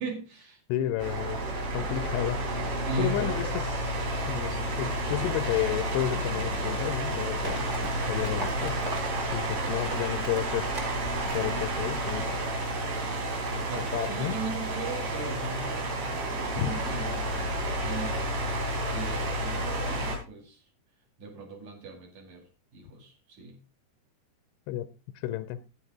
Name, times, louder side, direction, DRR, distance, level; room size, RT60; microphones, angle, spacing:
voice 1, 0.0-0.6 2.8-3.5 13.5-17.4 17.8-20.6 21.2-22.5 22.7-23.6, right 3 dB, 50° right, 3.4 m, -38 dB
voice 2, 0.7-1.5 1.7-2.4 3.0-3.9 4.3-7.7 8.1-8.8 9.3-10.7 11.3-12.5 13.8-14.4 16.6-16.8 24.7-25.6, left 13 dB, 90° left, 2.7 m, -32 dB
sound 1, 1.0-20.2, right 1 dB, 85° right, 5.0 m, -31 dB
Livestock farm animals working animals, 7.4-12.6, right 2 dB, 25° right, 1.9 m, -40 dB
10.5 x 9.8 x 3.6 m
omnidirectional pair, 4.7 m